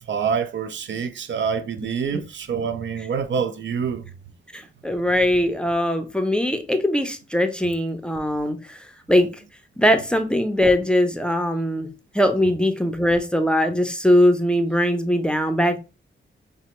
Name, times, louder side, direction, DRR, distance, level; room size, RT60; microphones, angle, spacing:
voice 1, 0.1-4.1, right 6 dB, 65° right, 0.5 m, -26 dB
voice 2, 4.5-8.8 9.1-9.3 9.8-11.9 12.1-15.8, equal, 5° left, 0.5 m, -21 dB
5.3 x 2.1 x 3.0 m
wide cardioid pair, 100°, 20 cm